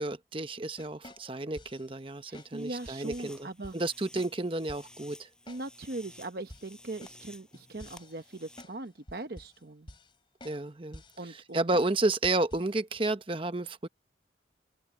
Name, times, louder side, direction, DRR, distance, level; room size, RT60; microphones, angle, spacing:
voice 1, 0.0-3.5 3.7-5.3 10.4-11.0 11.3-13.9, right 2 dB, 30° right, 0.9 m, -31 dB
sound 1, 0.8-1.9 2.3-2.5 2.9-3.4 3.6-3.8 4.2-4.4 4.7-4.9 5.5-5.7 6.0-6.1 6.5-8.8 9.1-9.6 9.9-10.2 10.4-10.6 10.9-11.2 11.7-11.9 12.2-12.7, left 1 dB, 30° left, 2.9 m, -50 dB
sound 2, 1.9-8.6, left 1 dB, 5° left, 7.0 m, -54 dB
voice 2, 2.3-3.7 5.5-9.9 11.2-11.7, right 2 dB, 60° right, 0.9 m, -40 dB
open air
head